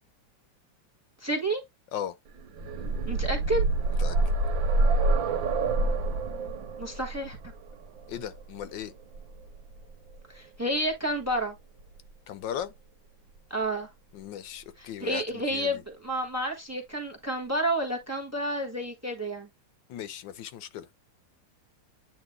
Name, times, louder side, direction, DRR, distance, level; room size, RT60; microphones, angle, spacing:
voice 1, 1.2-1.6 3.1-3.7 6.8-7.4 10.3-11.5 13.5-13.9 14.8-19.5, right 1 dB, 10° right, 1.2 m, -30 dB
sound 1, 2.4-10.2 11.3-11.4 11.8-11.9, right 2 dB, 80° right, 1.8 m, -27 dB
voice 2, 8.1-8.9 12.3-12.7 14.1-15.8 19.9-20.9, left 10 dB, 80° left, 1.4 m, -37 dB
9.0 x 3.0 x 3.6 m
omnidirectional pair, 2.0 m